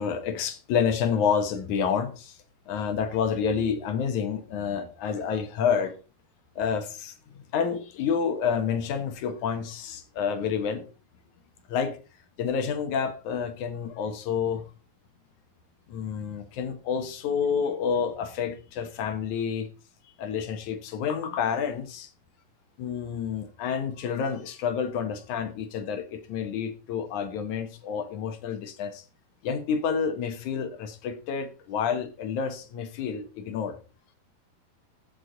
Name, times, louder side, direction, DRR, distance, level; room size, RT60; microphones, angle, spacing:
voice 1, 0.0-2.4 2.7-6.0 6.6-7.1 7.5-10.9 11.7-12.0 12.4-14.7 15.9-19.7 20.2-22.1 22.8-29.0 29.4-33.8, left 7 dB, 65° left, 2.3 m, -29 dB
14.5 x 7.7 x 3.8 m
omnidirectional pair, 4.2 m